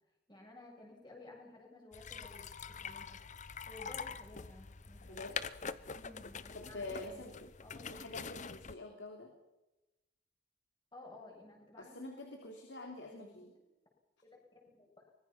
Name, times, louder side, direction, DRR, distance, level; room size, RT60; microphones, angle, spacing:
voice 1, 0.3-3.2 3.7-5.4 5.9-7.3 7.6-8.0 10.9-12.0 13.1-13.6 14.2-15.1, left 2 dB, 25° left, -1 dB, 7.2 m, -55 dB
sound 1, 1.9-8.8, left 6 dB, 40° left, 0.8 m, -45 dB
voice 2, 6.5-7.5 7.9-9.3 11.8-13.5, left 2 dB, 85° left, 3 dB, 3.1 m, -46 dB
24.5 x 21.0 x 5.9 m, 0.99 s
head